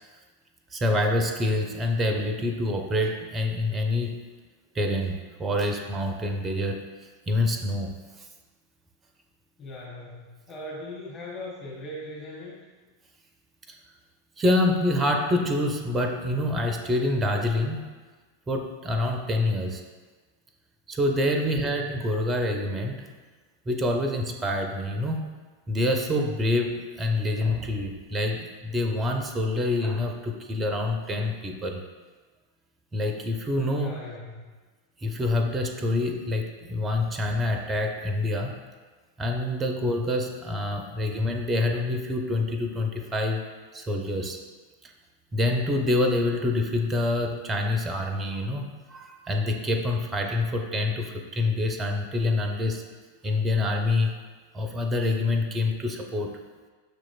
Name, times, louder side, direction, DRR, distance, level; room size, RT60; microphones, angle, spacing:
voice 1, 0.7-4.2 4.7-6.8 7.3-8.3 13.7-13.8 14.4-17.8 18.5-19.8 20.9-23.1 23.7-25.3 25.7-31.8 32.9-34.0 35.0-38.6 39.2-43.4 43.7-44.4 44.8-44.9 45.3-52.8 53.2-54.2 54.5-56.3, left 2 dB, 20° right, 4 dB, 0.5 m, -26 dB
voice 2, 9.6-12.6 21.4-21.6 33.7-34.4, left 1 dB, 20° left, -7 dB, 1.1 m, -39 dB
6.2 x 2.9 x 2.4 m, 1.4 s
figure-of-eight pair, 90°, 0 cm